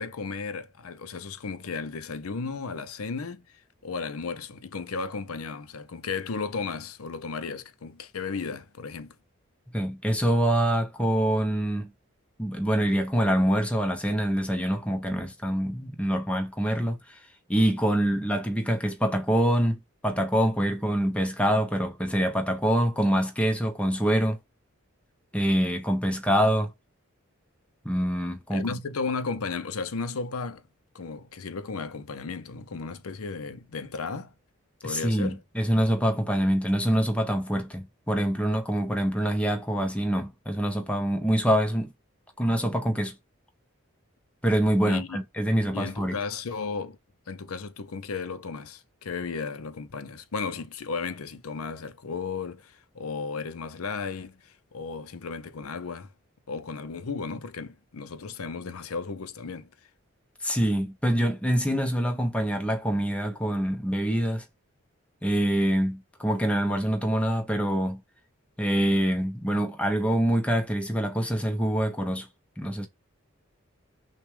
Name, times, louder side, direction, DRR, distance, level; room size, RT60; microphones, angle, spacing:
voice 1, 0.0-9.2 28.5-30.6 30.9-34.3 34.8-35.4 44.9-45.2 45.7-47.0 47.3-56.1 56.5-59.7, left 4 dB, 90° left, 0.7 m, -34 dB
voice 2, 9.7-11.9 12.4-17.2 17.5-24.4 25.3-26.7 27.8-28.7 34.8-41.9 42.4-43.2 44.4-46.2 60.4-64.4 65.2-68.0 68.6-72.3 72.6-72.9, equal, 5° left, 0.8 m, -25 dB
6.0 x 2.4 x 3.3 m
head